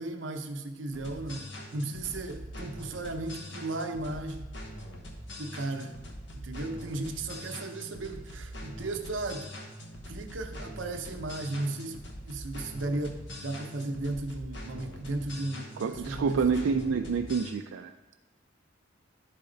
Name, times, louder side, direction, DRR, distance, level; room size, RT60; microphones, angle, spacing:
voice 1, 0.0-1.4 1.7-4.5 5.4-6.0 6.3-9.5 10.1-17.1, right 2 dB, 70° right, 5 dB, 0.7 m, -35 dB
sound 1, 0.9-17.5, equal, 65° left, 1.1 m, -43 dB
voice 2, 15.8-17.9, right 5 dB, 85° right, 5 dB, 0.3 m, -28 dB
11.5 x 4.1 x 3.9 m, 1.1 s
head